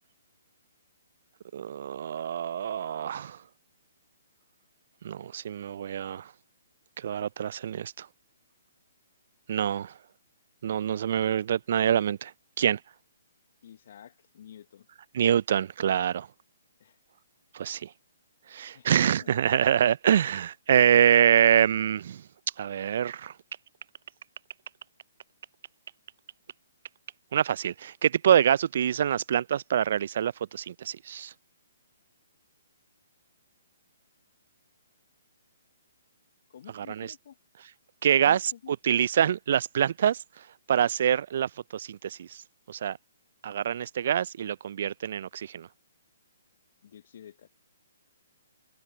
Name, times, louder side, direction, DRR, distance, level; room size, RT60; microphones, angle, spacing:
voice 1, 1.5-3.4 5.0-6.3 7.0-8.1 9.5-10.0 10.6-12.8 15.1-16.3 17.5-17.9 18.5-22.3 22.6-23.4 27.3-31.3 36.7-37.1 38.0-43.0 43.4-45.7, right 9 dB, 55° right, 0.3 m, -26 dB
voice 2, 13.6-14.9 16.8-17.0 18.7-19.3 36.5-37.4 38.1-38.7 46.8-47.5, left 9 dB, 55° left, 0.9 m, -49 dB
figure-of-eight pair, 130°, 0 cm